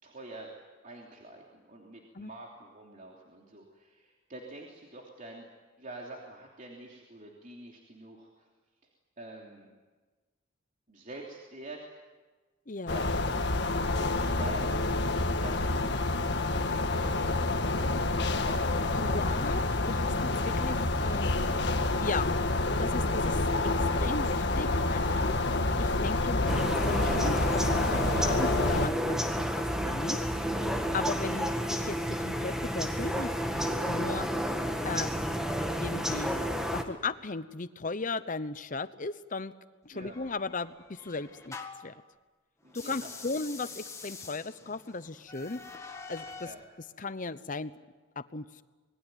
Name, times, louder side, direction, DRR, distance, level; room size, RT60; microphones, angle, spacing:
voice 1, 0.0-0.5 0.8-5.5 5.8-8.5 9.2-9.7 10.9-11.9 12.9-13.2 14.0-19.2 30.9-31.1 39.9-40.2 42.6-43.1 46.4-46.6, right 2 dB, 40° right, -1 dB, 3.1 m, -47 dB
voice 2, 12.7-13.2 18.9-21.3 22.0-22.3 22.8-23.4 24.0-25.3 25.8-30.3 30.9-34.3 34.8-35.1 35.8-36.3 36.7-39.5 39.8-41.6 41.8-42.0 42.7-45.6 46.1-46.5 47.0-47.7 48.3-48.6, left 3 dB, 40° left, 14 dB, 0.9 m, -36 dB
sound 1, 12.9-28.9, left 2 dB, 60° left, 1.7 m, -28 dB
sound 2, 26.5-36.8, equal, 5° right, 1.8 m, -31 dB
sound 3, 40.1-42.0 42.7-46.6, left 4 dB, 15° left, 2.0 m, -46 dB
27.0 x 21.0 x 9.2 m, 1.3 s
head